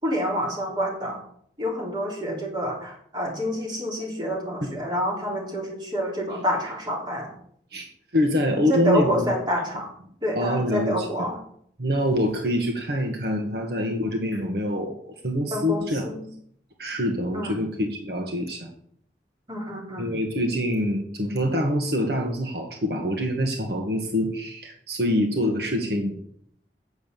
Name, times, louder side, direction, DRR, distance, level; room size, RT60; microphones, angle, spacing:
voice 1, 0.0-1.2 1.6-7.3 8.7-9.9 10.2-11.4 15.5-16.3 17.3-17.6 19.5-20.1, equal, 25° right, -2 dB, 3.3 m, -28 dB
voice 2, 8.1-9.3 10.3-11.1 11.8-16.1 16.8-18.7 20.0-26.1, left 1 dB, 65° right, 2 dB, 1.5 m, -25 dB
8.8 x 6.9 x 7.5 m, 0.65 s
head